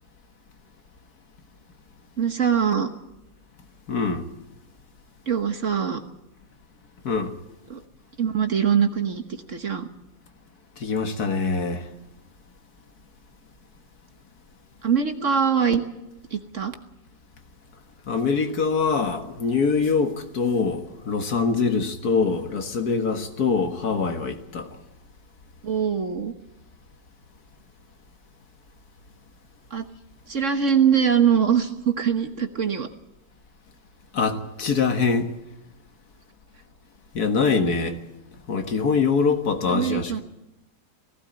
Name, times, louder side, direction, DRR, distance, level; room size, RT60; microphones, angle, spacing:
voice 1, 2.2-2.9 5.3-6.0 7.7-7.8 8.2-9.2 9.5-9.9 14.8-15.8 16.3-16.7 25.6-26.3 29.7-29.8 30.3-32.9 39.7-40.2, right 7 dB, 45° right, 1.4 m, -22 dB
voice 2, 3.9-4.2 7.0-7.3 10.8-11.9 18.1-24.7 34.1-35.3 37.1-38.0 38.5-40.2, left 5 dB, 60° left, 2.0 m, -24 dB
18.5 x 16.5 x 8.8 m
omnidirectional pair, 1.9 m